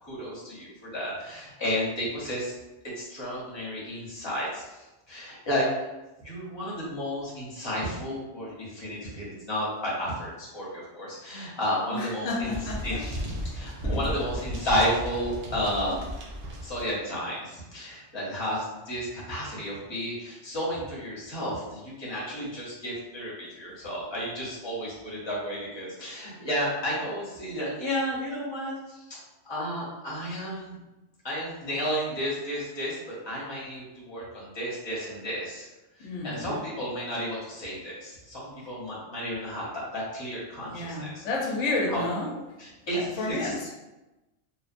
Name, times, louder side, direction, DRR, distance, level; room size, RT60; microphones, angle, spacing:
voice 1, 0.0-2.5 2.9-5.9 6.2-12.5 12.8-16.0 16.6-30.8 31.2-35.7 36.0-41.2 41.9-42.0 42.6-43.7, equal, 25° left, -7 dB, 0.9 m, -32 dB
voice 2, 11.9-13.0 13.8-14.1 36.0-36.6 40.6-42.3 42.9-43.7, left 2 dB, 85° left, -2 dB, 0.9 m, -31 dB
sound 1, 12.4-16.9, equal, 70° right, 0.3 m, -35 dB
3.0 x 2.0 x 2.5 m, 1.0 s
omnidirectional pair, 1.2 m